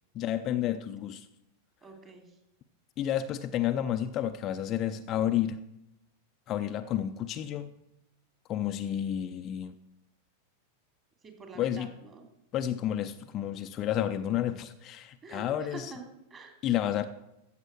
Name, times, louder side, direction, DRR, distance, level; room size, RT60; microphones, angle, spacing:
voice 1, 0.1-1.3 3.0-5.6 6.5-7.7 8.5-9.7 11.6-11.9 12.5-15.9 16.6-17.1, left 11 dB, 35° left, 0.5 m, -30 dB
voice 2, 1.8-2.4 11.2-12.2 15.2-16.7, right 3 dB, 25° right, 3.1 m, -47 dB
14.5 x 7.3 x 6.2 m
figure-of-eight pair, 90°, 0 cm